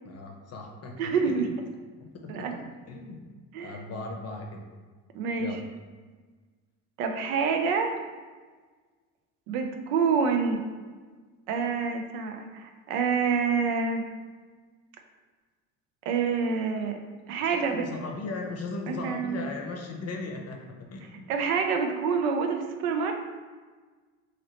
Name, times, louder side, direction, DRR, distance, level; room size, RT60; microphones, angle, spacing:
voice 1, 0.0-1.4 2.0-2.5 2.9-3.2 3.6-4.6 5.4-5.6 17.5-21.3, left 3 dB, 35° left, 2 dB, 0.6 m, -38 dB
voice 2, 1.0-1.5 2.3-2.6 3.5-3.7 5.1-5.6 7.0-7.9 9.5-10.6 11.5-14.0 16.1-17.0 17.3-17.8 18.9-19.5 21.3-23.1, right 5 dB, 90° right, 4 dB, 0.5 m, -27 dB
2.9 x 2.8 x 2.9 m, 1.4 s
supercardioid pair, 75°, 42 cm